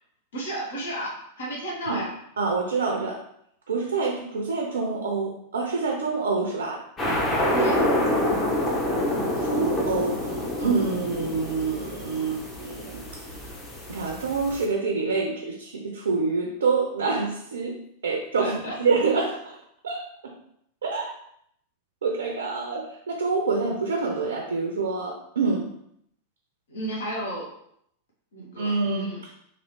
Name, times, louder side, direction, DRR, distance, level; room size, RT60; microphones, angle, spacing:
voice 1, 0.3-1.1 1.4-2.1 7.5-7.8 18.4-18.7 26.7-27.5 28.3-29.2, right 1 dB, 65° left, -3 dB, 0.9 m, -32 dB
voice 2, 2.4-3.2 3.7-6.8 9.4-13.0 13.9-17.8 18.0-19.6 19.8-20.3 20.8-21.1 22.0-25.7 28.6-29.1, right 4 dB, 70° right, 1 dB, 0.5 m, -27 dB
sound 1, 7.0-14.6, left 1 dB, 20° left, 0.8 m, -27 dB
2.9 x 2.6 x 3.0 m, 0.72 s
figure-of-eight pair, 90°, 0 cm